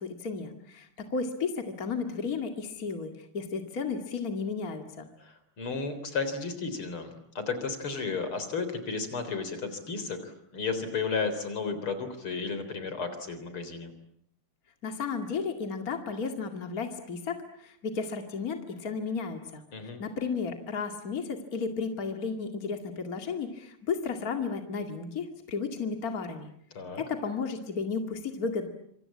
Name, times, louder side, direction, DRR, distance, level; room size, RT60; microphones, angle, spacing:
voice 1, 0.0-5.1 14.8-19.6 20.0-26.5 27.0-28.7, left 5 dB, 40° left, 5 dB, 2.7 m, -33 dB
voice 2, 5.2-7.1 7.3-13.9 19.7-20.0 26.7-27.0, left 4 dB, 75° left, 10 dB, 4.6 m, -33 dB
26.5 x 26.0 x 8.6 m, 0.69 s
omnidirectional pair, 2.4 m